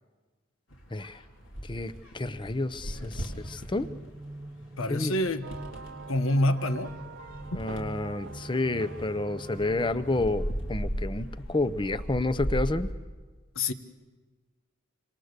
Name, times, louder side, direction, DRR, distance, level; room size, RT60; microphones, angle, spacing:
sound 1, 0.7-12.9, equal, 70° left, 3.9 m, -38 dB
voice 1, 0.9-1.2 1.6-3.9 4.9-5.1 7.5-12.9, left 2 dB, 25° left, 13 dB, 0.7 m, -30 dB
sound 2, 3.0-10.9, right 1 dB, 20° right, 0.8 m, -45 dB
voice 2, 4.8-5.5 6.1-6.9 7.5-7.6 13.5-13.7, left 1 dB, 90° left, 10 dB, 1.3 m, -27 dB
sound 3, 5.4-10.5, right 5 dB, 60° right, 0.7 m, -47 dB
26.5 x 26.5 x 6.7 m, 1.4 s
head